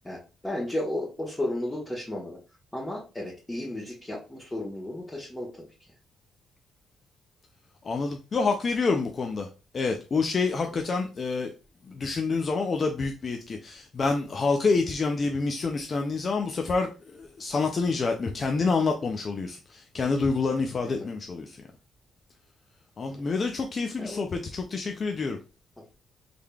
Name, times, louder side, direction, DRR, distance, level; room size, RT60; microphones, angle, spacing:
voice 1, 0.0-2.4 2.7-5.7 20.8-21.1 23.0-23.2 24.0-24.3, left 1 dB, 10° left, -6 dB, 1.2 m, -34 dB
voice 2, 7.9-9.5 9.7-11.5 12.0-16.9 17.2-19.6 19.9-21.5 23.0-25.4, left 4 dB, 40° left, 3 dB, 0.4 m, -27 dB
3.6 x 3.3 x 2.3 m, 0.33 s
cardioid pair, 90°, 0 cm